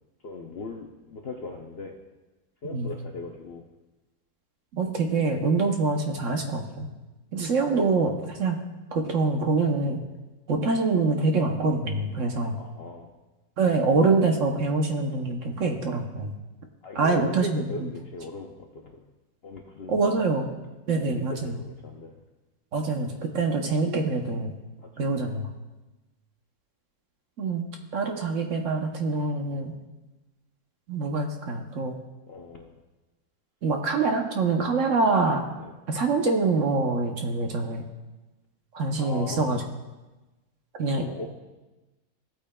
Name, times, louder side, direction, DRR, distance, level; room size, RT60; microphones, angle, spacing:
voice 1, 0.2-2.0 2.6-3.7 8.5-8.6 12.6-13.1 16.8-19.0 19.4-20.2 20.9-22.2 24.8-25.1 32.3-32.8 35.6-35.7 39.0-39.6 40.9-41.3, left 3 dB, 60° left, 2 dB, 0.6 m, -39 dB
voice 2, 4.7-6.9 7.3-8.6 8.9-10.0 10.5-12.6 13.6-16.3 16.9-17.9 19.9-20.5 20.9-21.6 22.7-24.5 25.0-25.5 27.4-27.7 27.9-29.7 30.9-31.9 33.6-35.4 35.9-37.8 38.7-39.6 40.8-41.0, right 3 dB, 55° right, 3 dB, 1.0 m, -25 dB
16.0 x 8.5 x 2.2 m, 1.1 s
omnidirectional pair, 1.7 m